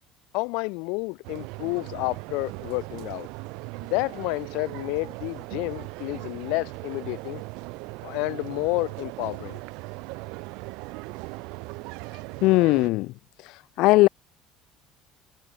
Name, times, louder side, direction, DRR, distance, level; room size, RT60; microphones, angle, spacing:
voice 1, 0.3-3.3 3.9-7.4 8.0-9.6, left 30 dB, 85° left, 1.3 m, -30 dB
sound 1, 1.2-12.9, right 27 dB, 80° right, 4.4 m, -38 dB
voice 2, 12.4-13.1 13.8-14.1, left 20 dB, 65° left, 0.5 m, -18 dB
cardioid pair, 160°, 0 cm